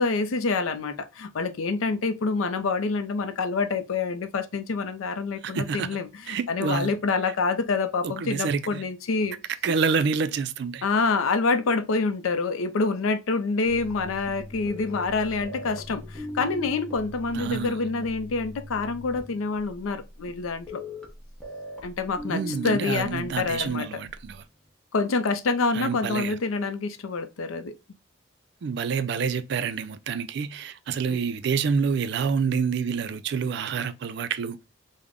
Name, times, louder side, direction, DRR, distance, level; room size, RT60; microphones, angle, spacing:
voice 1, 0.0-9.4 10.8-20.8 21.8-23.9 24.9-27.7 31.1-31.2, left 4 dB, 85° left, 0.5 m, -27 dB
voice 2, 5.5-5.9 6.3-6.9 8.0-8.8 9.6-10.8 17.3-17.8 22.3-24.4 25.7-26.3 28.6-34.6, right 5 dB, 55° right, 0.3 m, -27 dB
sound 1, 13.6-24.4 24.6-24.7, left 1 dB, 5° left, 0.7 m, -40 dB
3.5 x 2.1 x 3.5 m
head